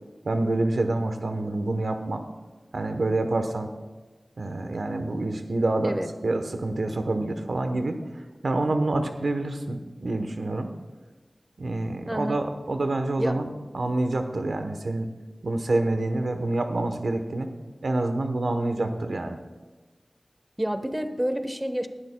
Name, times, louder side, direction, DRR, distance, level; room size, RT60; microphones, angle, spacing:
voice 1, 0.2-2.2 2.7-3.7 4.4-6.0 6.2-8.0 8.4-10.7 11.6-13.5 13.7-15.1 15.4-17.5 17.8-19.4, right 2 dB, 90° right, 7 dB, 0.9 m, -27 dB
voice 2, 12.1-12.4 13.2-13.4 20.6-21.9, equal, 10° right, 9 dB, 0.9 m, -28 dB
18.5 x 11.5 x 2.2 m, 1.3 s
wide cardioid pair, 55°, 0 cm